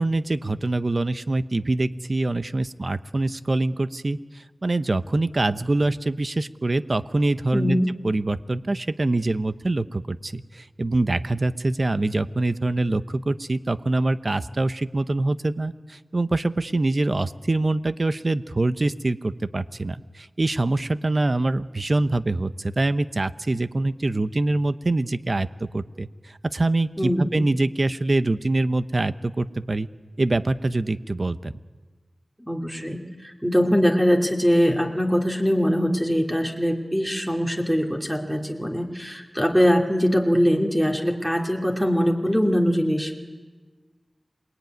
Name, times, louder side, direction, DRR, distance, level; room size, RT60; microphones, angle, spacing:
voice 1, 0.0-26.1 26.4-29.9 30.2-31.5, right 2 dB, 50° right, 12 dB, 0.9 m, -24 dB
voice 2, 7.5-7.9 27.0-27.4 32.4-43.2, equal, 5° right, 1 dB, 2.8 m, -22 dB
28.0 x 21.0 x 9.4 m, 1.4 s
wide cardioid pair, 55°, 0 cm